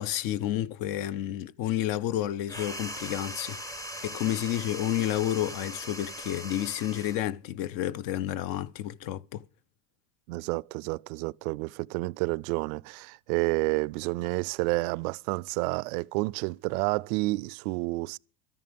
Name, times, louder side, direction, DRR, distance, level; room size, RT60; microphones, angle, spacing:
voice 1, 0.0-3.6 4.0-9.4, left 12 dB, 50° left, 0.6 m, -30 dB
sound 1, 2.5-7.3, equal, 10° left, 0.6 m, -40 dB
voice 2, 10.3-18.2, right 24 dB, 70° right, 0.5 m, -30 dB
13.5 x 11.0 x 5.2 m
supercardioid pair, 130°, 45 cm